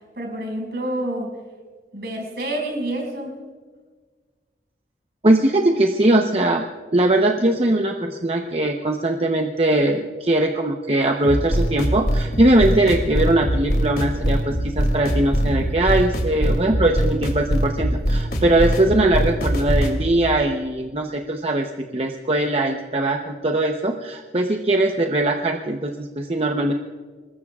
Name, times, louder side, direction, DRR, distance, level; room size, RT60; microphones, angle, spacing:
voice 1, 0.2-1.3 1.9-3.4, right 1 dB, 65° right, 1 dB, 5.5 m, -28 dB
voice 2, 5.2-6.6 6.9-26.7, right 1 dB, 35° right, 2 dB, 0.8 m, -20 dB
sound 1, 11.2-20.0, equal, 55° left, 2.7 m, -22 dB
25.5 x 21.0 x 2.4 m, 1.4 s
head